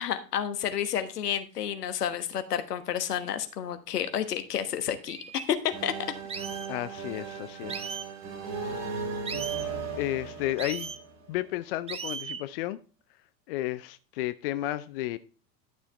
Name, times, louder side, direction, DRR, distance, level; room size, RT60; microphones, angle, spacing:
voice 1, 0.0-5.2 5.5-5.9, left 9 dB, 65° left, 10 dB, 1.4 m, -30 dB
sound 1, 4.6-4.7 5.1-5.4 6.3-6.7 7.7-8.1 9.2-9.7 10.6-11.0 11.9-12.4, right 6 dB, 10° right, 0.7 m, -37 dB
sound 2, 5.7-11.5, right 5 dB, 30° right, 3.4 m, -37 dB
voice 2, 6.7-8.0 10.0-10.9 11.3-12.8 13.5-15.2, left 15 dB, 40° left, 15 dB, 0.4 m, -32 dB
11.5 x 6.9 x 3.3 m, 0.36 s
figure-of-eight pair, 90°, 50 cm